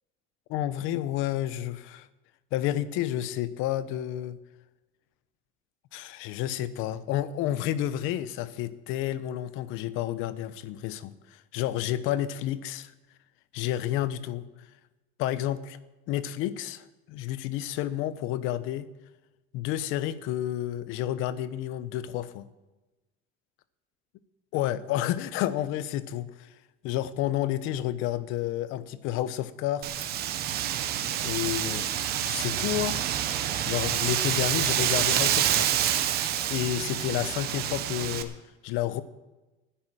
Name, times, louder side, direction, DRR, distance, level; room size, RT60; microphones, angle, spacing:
voice 1, 0.5-2.1 2.5-4.4 5.9-12.9 13.5-14.4 15.2-15.8 16.1-18.9 19.5-22.5 24.5-26.5 26.8-30.1 31.2-33.3 33.6-36.0 36.5-38.3 38.6-39.0, left 13 dB, 75° left, 15 dB, 0.8 m, -30 dB
Wind, 29.8-38.2, right 11 dB, 50° right, 1.0 m, -27 dB
10.0 x 10.0 x 9.1 m, 1.1 s
cardioid pair, 180°, 21 cm